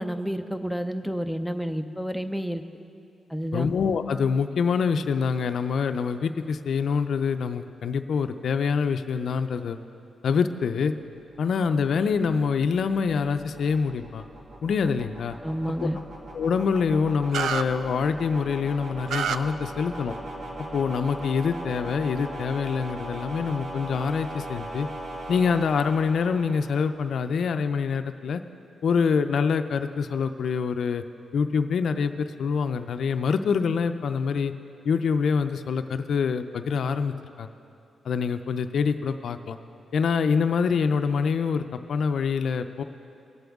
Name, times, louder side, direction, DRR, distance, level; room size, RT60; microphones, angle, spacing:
voice 1, 0.0-2.6 3.3-3.7 15.4-16.0, equal, ahead, 7 dB, 0.6 m, -30 dB
voice 2, 3.5-9.8 10.2-10.9 11.4-14.2 14.6-15.4 15.8-15.9 16.3-20.2 20.7-24.9 25.3-28.4 28.8-31.0 31.3-34.5 34.8-37.5 38.0-39.6 39.9-42.8, left 5 dB, 70° left, 8 dB, 0.4 m, -25 dB
sound 1, 11.0-27.2, right 1 dB, 60° right, 1.6 m, -39 dB
sound 2, 17.3-17.6 19.1-19.4, right 8 dB, 85° right, 0.3 m, -26 dB
19.0 x 7.8 x 3.6 m, 2.6 s
cardioid pair, 95°, 0 cm